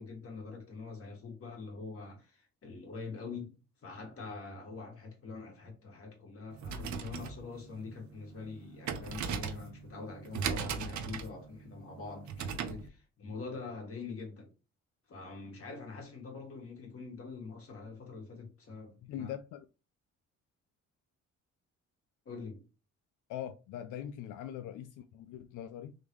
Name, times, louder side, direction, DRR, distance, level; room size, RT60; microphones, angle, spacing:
voice 1, 0.0-14.5 15.1-19.3 22.3-22.6, left 4 dB, 50° left, 2.0 m, -44 dB
sound 1, 6.5-12.9, right 6 dB, 70° right, 0.8 m, -39 dB
voice 2, 19.0-19.6 23.3-26.0, left 10 dB, 90° left, 0.5 m, -42 dB
3.8 x 3.3 x 3.1 m
cardioid pair, 90°, 30 cm